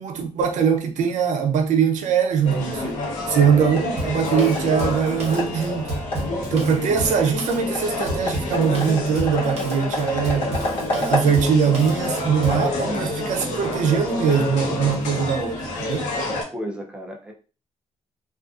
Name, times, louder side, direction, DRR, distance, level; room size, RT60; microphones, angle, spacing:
voice 1, 0.0-5.9 6.5-10.6 10.9-16.1, right 7 dB, 80° right, 0.5 m, -22 dB
sound 1, 2.4-16.4, left 2 dB, 90° left, 0.7 m, -28 dB
sound 2, 2.4-14.2, left 1 dB, 45° left, 0.9 m, -33 dB
Drum kit, 4.0-12.7, right 1 dB, 55° right, 0.8 m, -32 dB
voice 2, 16.1-17.3, equal, 10° right, 0.4 m, -34 dB
2.4 x 2.4 x 2.3 m
wide cardioid pair, 175°, 12 cm